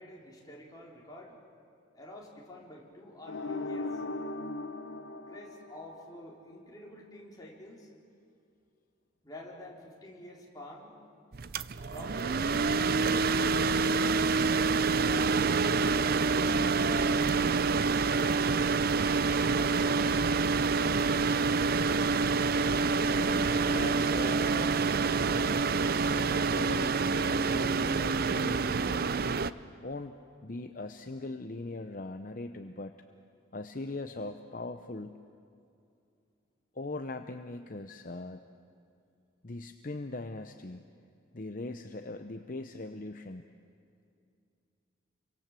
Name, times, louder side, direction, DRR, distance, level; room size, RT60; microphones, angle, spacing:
voice 1, 0.0-1.4 1.9-4.0 5.3-7.9 9.2-11.0 11.8-12.7 13.3-13.9 14.9-17.2 18.0-20.3, equal, 20° left, -3 dB, 4.2 m, -48 dB
sound 1, 3.3-6.2, left 2 dB, 65° left, 1.0 m, -38 dB
sound 2, 11.3-29.5, right 4 dB, 50° right, 0.6 m, -27 dB
voice 2, 23.1-25.7 26.2-29.1 29.8-32.9 33.5-35.2 36.7-38.4 39.4-40.8 41.3-43.5, left 2 dB, 45° left, 7 dB, 0.8 m, -40 dB
29.5 x 24.5 x 7.6 m, 2.4 s
head